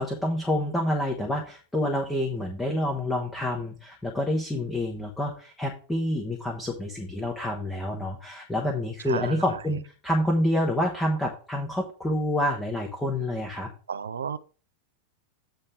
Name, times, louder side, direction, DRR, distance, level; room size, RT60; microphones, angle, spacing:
voice 1, 0.0-13.7, left 1 dB, 10° left, 1.2 m, -28 dB
voice 2, 9.1-9.4 13.9-14.4, right 7 dB, 70° right, 0.5 m, -32 dB
8.7 x 3.3 x 6.1 m
figure-of-eight pair, 90°, 0 cm